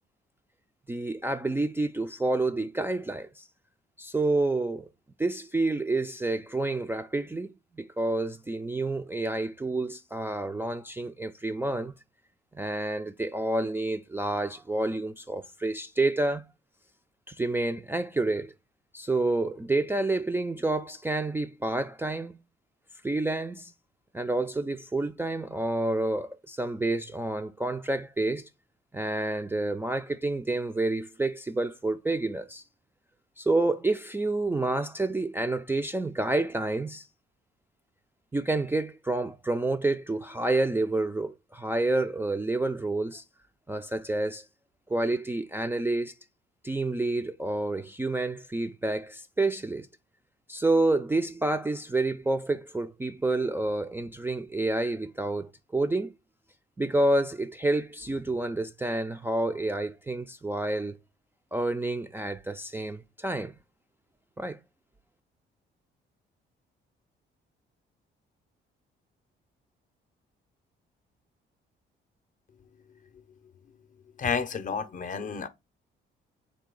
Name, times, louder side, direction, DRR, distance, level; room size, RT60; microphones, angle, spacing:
voice 1, 0.9-3.5 4.0-4.9 5.2-11.9 12.5-16.4 17.3-18.5 18.9-22.4 23.0-23.7 24.1-28.5 28.9-32.6 33.4-37.1 38.3-43.2 43.7-44.5 44.9-46.1 46.6-49.9 50.5-56.1 56.8-61.0 61.5-63.5 64.4-64.6, right 2 dB, 10° right, 0.3 m, -29 dB
voice 2, 74.2-75.5, left 6 dB, 40° left, 0.6 m, -30 dB
3.7 x 2.7 x 3.8 m
cardioid pair, 90°, 20 cm